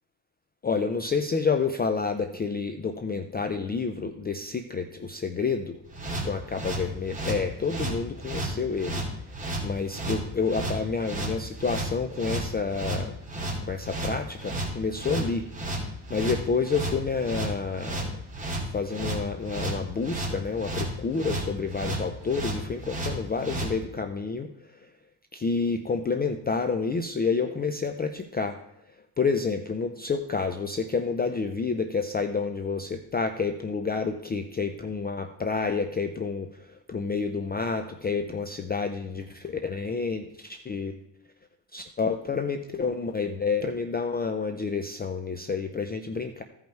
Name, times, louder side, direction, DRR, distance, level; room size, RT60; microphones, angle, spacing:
voice 1, 0.6-5.8 6.2-9.0 9.6-13.1 13.7-15.5 16.1-18.1 18.6-24.9 25.3-28.6 29.2-40.9 41.7-46.4, left 4 dB, 20° left, 7 dB, 0.4 m, -29 dB
sound 1, 5.9-23.7, right 1 dB, 15° right, 2.6 m, -33 dB
15.0 x 5.4 x 4.5 m, 0.82 s
cardioid pair, 145°, 46 cm